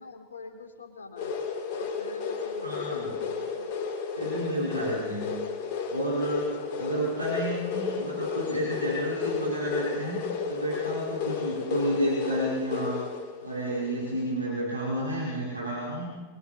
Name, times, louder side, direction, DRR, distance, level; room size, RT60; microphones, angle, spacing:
voice 1, 0.0-1.3 1.7-3.7 4.8-5.4 6.5-7.2, left 4 dB, 70° left, 4 dB, 4.1 m, -46 dB
sound 1, 1.2-14.3, left 5 dB, 45° left, 6.0 m, -33 dB
voice 2, 2.6-3.2 4.2-5.3 5.9-13.0 13.4-16.1, right 1 dB, 85° right, -5 dB, 5.1 m, -31 dB
28.0 x 23.5 x 4.3 m, 1.3 s
figure-of-eight pair, 90°, 0 cm